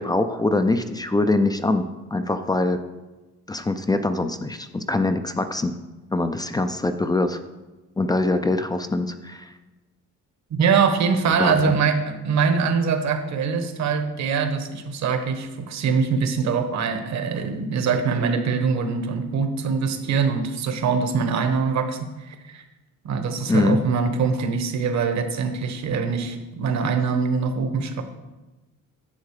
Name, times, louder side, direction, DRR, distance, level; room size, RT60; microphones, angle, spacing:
voice 1, 0.0-2.8 3.5-5.7 6.1-7.4 8.0-9.5 11.4-11.7 23.5-23.8, left 2 dB, 15° left, 9 dB, 0.3 m, -23 dB
voice 2, 10.5-22.6 23.0-28.0, right 5 dB, 60° right, 7 dB, 1.2 m, -23 dB
10.5 x 7.4 x 4.8 m, 1.1 s
cardioid pair, 165°, 32 cm